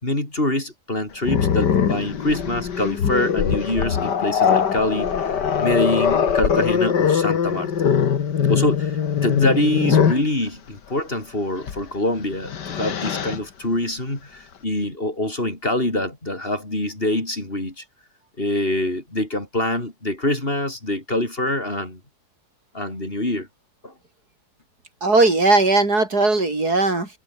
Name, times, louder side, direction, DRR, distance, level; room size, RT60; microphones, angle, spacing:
voice 1, 0.0-7.7 8.5-17.8 18.4-22.0 22.7-23.5 23.8-23.9, left 1 dB, 35° left, 5.3 m, -25 dB
Growling, 1.2-10.3 11.6-11.8 12.2-13.4, left 7 dB, 90° left, 2.3 m, -21 dB
voice 2, 25.0-27.1, right 3 dB, 65° right, 5.2 m, -18 dB
omnidirectional pair, 1.8 m